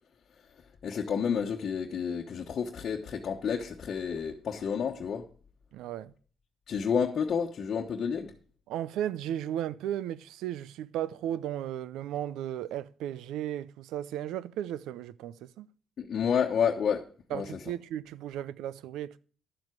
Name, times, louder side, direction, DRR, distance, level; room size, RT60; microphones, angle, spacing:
voice 1, 0.8-5.2 6.7-8.3 16.0-17.0 17.3-17.4, left 7 dB, 55° left, 1.1 m, -30 dB
voice 2, 5.7-6.1 8.7-15.7 17.3-19.2, right 11 dB, 90° right, 0.4 m, -35 dB
11.5 x 7.4 x 4.6 m
cardioid pair, 90°, 0 cm